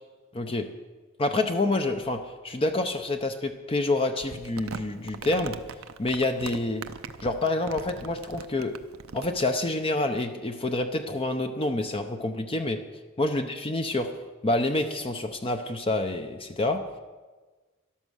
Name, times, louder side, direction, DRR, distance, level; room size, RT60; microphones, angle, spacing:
voice 1, 0.3-0.6 1.2-5.5 6.0-6.8 7.2-8.7 9.1-12.8 13.2-14.1 14.4-16.8, left 2 dB, 25° left, 6 dB, 0.7 m, -27 dB
Crumpling crinkling, 4.2-9.5, right 5 dB, 85° right, 0.7 m, -40 dB
13.0 x 12.0 x 6.4 m, 1.3 s
head